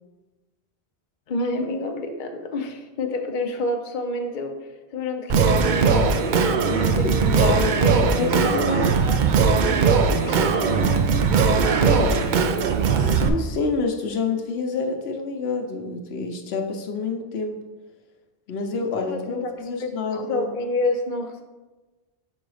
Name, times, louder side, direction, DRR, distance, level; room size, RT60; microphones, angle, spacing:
voice 1, 1.3-8.6 9.0-9.5 10.2-11.3 11.8-12.3 19.0-21.4, left 2 dB, 55° left, 4 dB, 0.8 m, -29 dB
Singing, 5.3-13.3, right 5 dB, 60° right, 0.6 m, -19 dB
voice 2, 7.0-7.6 8.2-8.9 13.0-17.6 18.5-20.5, left 4 dB, 80° left, 3 dB, 1.0 m, -28 dB
5.6 x 3.9 x 4.8 m, 1.2 s
omnidirectional pair, 1.0 m